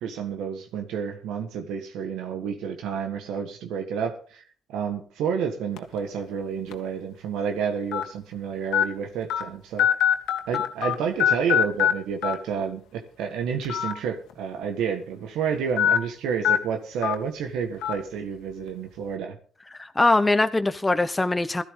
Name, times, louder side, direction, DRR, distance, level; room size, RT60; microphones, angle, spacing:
voice 1, 0.0-4.4 4.7-9.9 10.5-19.4, right 7 dB, 90° right, 1.6 m, -30 dB
sound 1, 5.8-6.0 6.7-6.8 7.9-8.0 8.7-8.8 9.3-9.4 9.8-10.9 11.2-11.9 12.2-12.3 13.6-13.9 14.3-14.4 15.8-16.0 16.4-16.6 17.0-17.2 17.8-17.9, left 10 dB, 90° left, 1.9 m, -21 dB
voice 2, 19.7-21.6, left 2 dB, 15° left, 0.9 m, -22 dB
16.5 x 13.0 x 3.8 m
cardioid pair, 90°, 0 cm